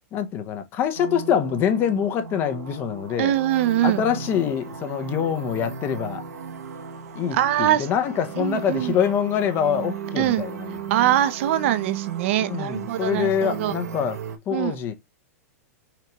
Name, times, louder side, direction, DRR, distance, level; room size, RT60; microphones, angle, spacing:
voice 1, 0.1-3.3 3.8-6.2 7.1-10.8 12.4-14.2 14.5-14.9, left 8 dB, 25° left, 0.6 m, -25 dB
sound 1, 0.9-14.4, right 6 dB, 90° right, 0.9 m, -36 dB
voice 2, 3.2-4.0 7.3-7.9 8.4-8.9 10.2-10.4 10.9-13.7 14.5-14.8, right 12 dB, 50° right, 0.5 m, -23 dB
5.8 x 2.4 x 3.0 m
supercardioid pair, 155°, 8 cm